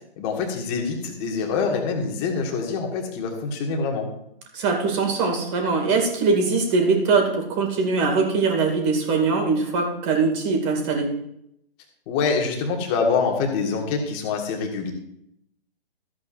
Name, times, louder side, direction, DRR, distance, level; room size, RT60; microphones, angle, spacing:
voice 1, 0.2-4.1 12.1-14.9, left 5 dB, 25° left, 2 dB, 1.9 m, -25 dB
voice 2, 4.5-11.1, right 4 dB, 30° right, 2 dB, 2.5 m, -22 dB
14.5 x 8.3 x 2.6 m, 0.76 s
figure-of-eight pair, 135°, 31 cm